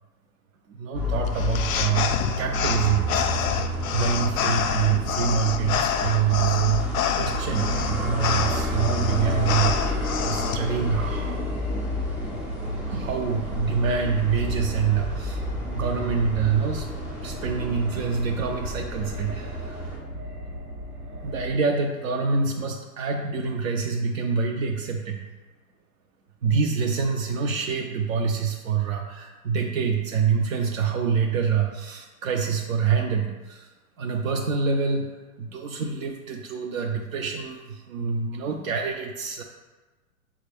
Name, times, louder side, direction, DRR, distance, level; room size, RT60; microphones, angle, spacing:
voice 1, 0.7-3.4 3.6-6.9 7.2-11.4 12.8-16.9 17.2-19.8 21.2-25.2 26.4-33.7 34.0-39.4, right 6 dB, 65° right, 1 dB, 0.6 m, -26 dB
sound 1, 0.9-20.0, left 1 dB, 5° right, 0.3 m, -30 dB
sound 2, 1.3-10.6, left 8 dB, 70° left, 0.5 m, -28 dB
sound 3, 9.2-21.5, right 1 dB, 90° right, 1.3 m, -38 dB
5.7 x 2.4 x 3.4 m, 1.2 s
hypercardioid pair, 105°, 43 cm